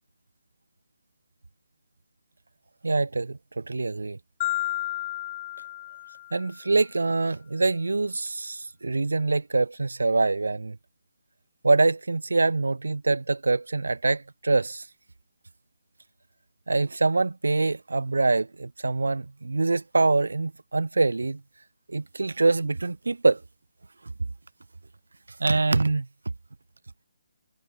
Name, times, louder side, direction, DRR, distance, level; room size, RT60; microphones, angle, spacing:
voice 1, 2.8-4.2 6.3-10.8 11.6-14.9 16.7-21.4 21.9-23.4 25.4-26.1, right 3 dB, 75° right, 1.6 m, -24 dB
Marimba xylophone, 4.4-6.6, left 15 dB, 30° left, 1.2 m, -32 dB
figure-of-eight pair, 145°, 0 cm